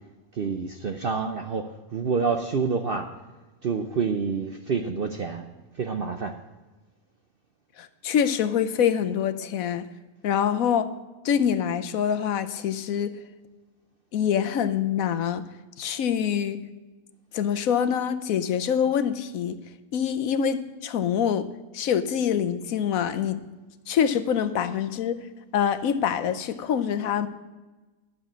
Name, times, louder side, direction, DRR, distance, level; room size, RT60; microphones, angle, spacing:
voice 1, 0.4-1.6 1.9-3.1 3.6-5.4 5.8-6.3, right 5 dB, 50° right, 0.7 m, -27 dB
voice 2, 7.8-9.8 10.2-10.9 11.2-13.2 14.1-15.5 15.8-16.7 17.3-19.6 19.9-21.5 21.7-23.4 23.9-25.2 25.5-27.3, left 8 dB, 70° left, 1.2 m, -25 dB
11.0 x 7.1 x 7.3 m
omnidirectional pair, 1.6 m